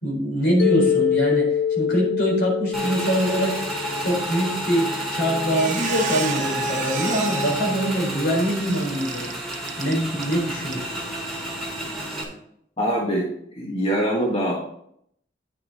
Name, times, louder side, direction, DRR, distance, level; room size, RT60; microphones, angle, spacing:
voice 1, 0.0-3.6 4.0-9.3 9.8-11.0, equal, 70° left, -2 dB, 4.1 m, -24 dB
Mallet percussion, 0.6-4.7, left 8 dB, 85° left, 0.9 m, -25 dB
Motorcycle / Engine, 2.7-12.2, equal, ahead, 2.3 m, -30 dB
Squeak, 5.0-5.1 5.4-10.4 10.7-10.9 11.3-11.4, right 7 dB, 45° right, 1.0 m, -33 dB
voice 2, 12.8-14.5, right 1 dB, 35° left, -2 dB, 1.3 m, -24 dB
9.3 x 6.5 x 4.1 m, 0.71 s
head